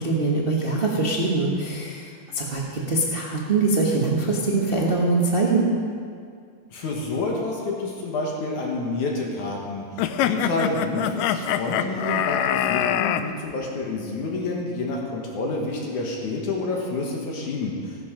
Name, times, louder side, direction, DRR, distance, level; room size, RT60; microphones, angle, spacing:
voice 1, 0.0-5.6, right 3 dB, 70° right, -3 dB, 0.5 m, -23 dB
voice 2, 6.7-9.8 10.2-18.0, left 2 dB, 70° left, -1 dB, 2.9 m, -28 dB
sound 1, 10.0-13.2, left 10 dB, 90° left, 2.2 m, -24 dB
16.5 x 12.0 x 5.1 m, 2.2 s
omnidirectional pair, 3.8 m